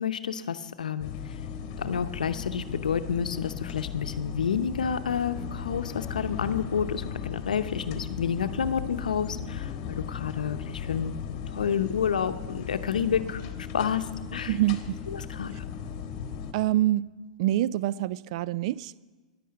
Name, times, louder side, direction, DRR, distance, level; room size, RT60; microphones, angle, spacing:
voice 1, 0.0-1.3 1.8-11.1 11.5-13.4 13.7-14.6 15.1-15.6, left 7 dB, 85° left, 0.7 m, -29 dB
sound 1, 1.0-16.5, left 7 dB, 45° left, 1.3 m, -37 dB
voice 2, 14.5-15.0 16.5-17.1 17.4-19.0, right 14 dB, 55° right, 0.3 m, -26 dB
11.0 x 10.0 x 7.5 m
hypercardioid pair, 120°, 4 cm